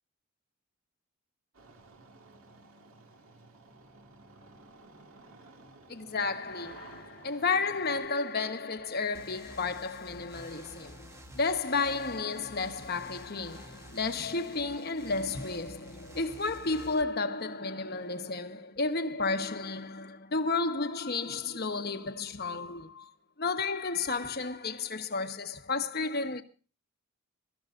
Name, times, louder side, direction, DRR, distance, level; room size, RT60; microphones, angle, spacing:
Engine starting, 1.5-8.1, right 2 dB, 70° right, 2.0 m, -54 dB
voice 1, 5.9-23.1 23.4-26.4, left 4 dB, 45° left, 1.1 m, -32 dB
sound 1, 9.1-17.0, right 1 dB, 15° right, 0.9 m, -50 dB
24.5 x 13.5 x 2.5 m
head